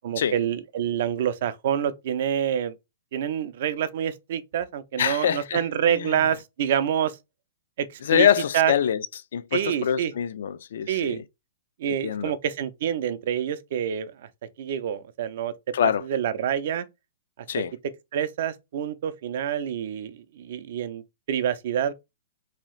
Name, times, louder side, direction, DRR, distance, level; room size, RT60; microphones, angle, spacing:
voice 1, 0.0-2.7 3.1-7.2 7.8-8.3 8.5-8.7 9.5-10.1 10.9-11.2 11.8-14.1 14.6-15.5 15.8-16.9 17.4-17.5 18.1-21.0 21.3-21.9, right 9 dB, 55° right, 0.4 m, -27 dB
voice 2, 5.0-5.6 5.9-6.2 8.0-9.1 9.3-11.2 11.9-12.3 15.7-16.0 17.5-17.7, left 9 dB, 70° left, 0.3 m, -24 dB
2.7 x 2.3 x 3.1 m
hypercardioid pair, 155°, 0 cm